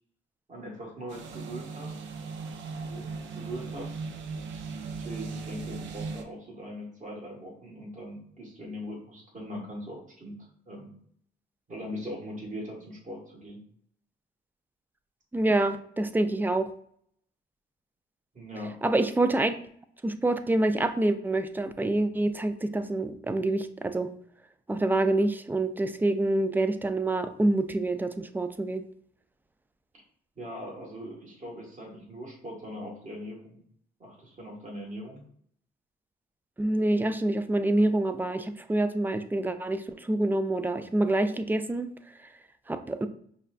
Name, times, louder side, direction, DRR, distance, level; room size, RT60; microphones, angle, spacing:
voice 1, 0.5-1.9 2.8-3.9 4.9-10.9 11.7-13.6 18.3-18.8 30.4-33.6 34.0-35.2, equal, 40° right, -2 dB, 1.6 m, -40 dB
sound 1, 1.1-6.2, right 4 dB, 75° right, 0.5 m, -38 dB
voice 2, 15.3-16.7 18.8-19.5 20.0-24.1 24.7-28.8 36.6-41.9 42.7-43.1, right 2 dB, 10° right, 10 dB, 0.3 m, -26 dB
5.4 x 2.2 x 2.4 m, 0.62 s
cardioid pair, 90°, 20 cm